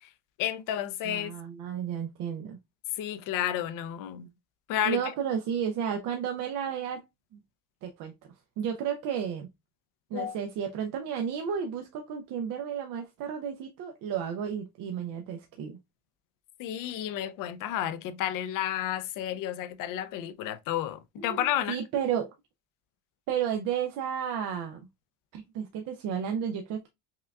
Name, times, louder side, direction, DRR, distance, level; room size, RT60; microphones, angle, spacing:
voice 1, 0.4-1.3 2.9-4.3 4.7-5.0 10.1-10.4 16.6-21.8, left 11 dB, 60° left, 0.5 m, -31 dB
voice 2, 1.0-2.6 4.9-7.0 7.3-7.4 7.8-8.1 8.6-9.5 10.1-15.8 21.3-22.3 23.3-24.9 25.3-26.9, right 8 dB, 60° right, 0.6 m, -32 dB
5.5 x 2.3 x 2.2 m
cardioid pair, 120°, 36 cm